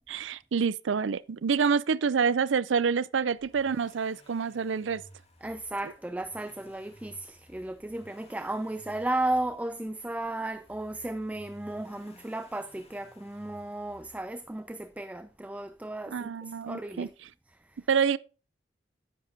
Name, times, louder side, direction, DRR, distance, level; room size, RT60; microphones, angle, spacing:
voice 1, 0.0-5.0 16.1-17.1 17.9-18.2, right 6 dB, 80° right, 0.5 m, -27 dB
Accelerating revving vroom, 3.2-15.1 16.4-16.5, equal, 35° left, 2.3 m, -57 dB
voice 2, 5.4-17.1 17.5-17.9, right 1 dB, 10° right, 0.3 m, -34 dB
10.0 x 9.4 x 2.7 m
head